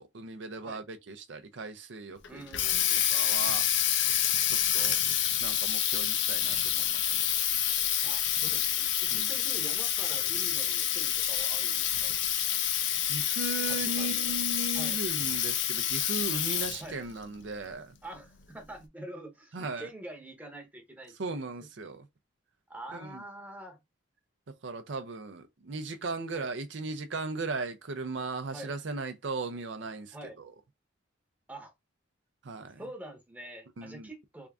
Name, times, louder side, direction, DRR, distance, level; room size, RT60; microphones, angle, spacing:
voice 1, 0.0-2.4 3.1-3.7 4.5-5.0 5.4-7.2 9.1-9.3 13.0-17.9 19.5-19.9 21.2-22.1 22.9-23.2 24.5-30.5 32.4-32.8 33.8-34.1, right 3 dB, 60° right, 0.5 m, -37 dB
Water tap faucet, 2.2-16.9, left 10 dB, 60° left, 0.6 m, -28 dB
voice 2, 2.3-3.0 8.0-12.1 13.7-14.4 14.7-15.0 16.7-17.0 18.0-21.4 22.7-23.8 26.3-26.5 28.5-28.7 30.1-30.4 31.5-31.7 32.8-34.5, right 1 dB, 10° right, 0.8 m, -46 dB
3.5 x 2.4 x 3.5 m
head